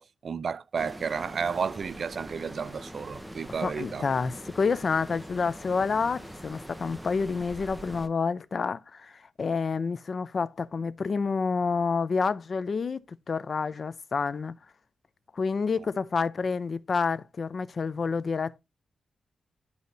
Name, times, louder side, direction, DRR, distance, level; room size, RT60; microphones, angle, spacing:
voice 1, 0.0-4.1 15.8-15.9, right 6 dB, 50° right, 0.3 m, -32 dB
sound 1, 0.8-8.1, equal, 5° right, 0.6 m, -43 dB
voice 2, 3.6-14.6 15.3-18.6, left 5 dB, 45° left, 0.4 m, -29 dB
12.0 x 4.1 x 2.6 m
wide cardioid pair, 145°, 0 cm